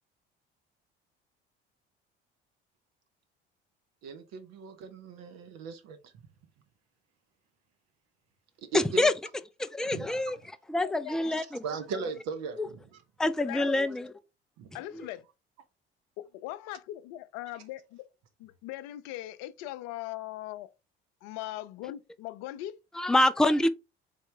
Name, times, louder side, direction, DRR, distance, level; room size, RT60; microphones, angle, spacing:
voice 1, 4.0-6.1 8.6-9.1 9.9-10.2 11.4-13.0 14.6-14.7, right 5 dB, 60° right, 0.8 m, -38 dB
voice 2, 8.7-9.1 9.6-10.4 10.7-11.6 12.6-12.7 13.2-14.1 23.0-23.7, left 1 dB, ahead, 0.4 m, -26 dB
voice 3, 10.8-11.3 13.4-13.7 14.7-15.2 16.2-18.1 18.4-20.7 21.2-22.8, left 15 dB, 60° left, 0.5 m, -40 dB
4.1 x 3.6 x 3.2 m
figure-of-eight pair, 55°, 30 cm